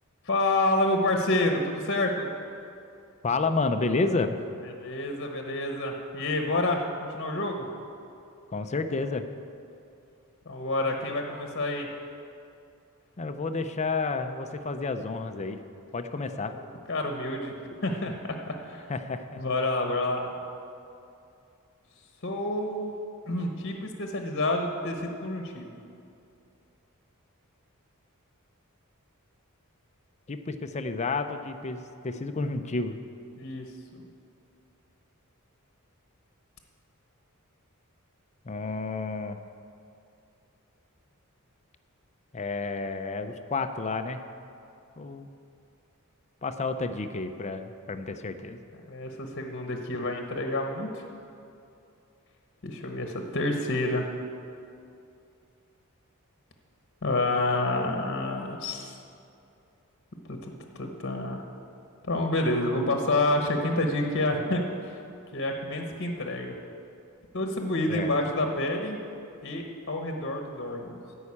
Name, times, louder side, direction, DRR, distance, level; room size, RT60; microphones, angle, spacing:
voice 1, 0.2-2.3 4.6-7.7 10.4-11.9 16.4-16.6 16.9-17.5 17.8-18.9 19.4-20.3 22.2-22.9 23.3-25.7 33.4-33.7 33.9-34.0 48.9-51.1 52.6-54.1 57.0-59.0 60.3-60.5 60.8-61.4 62.1-65.0 65.3-66.5 67.3-69.0 69.4-71.0, left 2 dB, 50° left, 3 dB, 1.1 m, -28 dB
voice 2, 3.2-4.4 8.5-9.3 13.2-15.6 15.9-16.5 18.9-19.4 30.3-33.0 38.4-39.4 42.3-44.2 45.0-45.3 46.4-48.6 67.9-68.1, left 3 dB, 30° left, 8 dB, 0.5 m, -30 dB
14.0 x 5.6 x 8.5 m, 2.6 s
head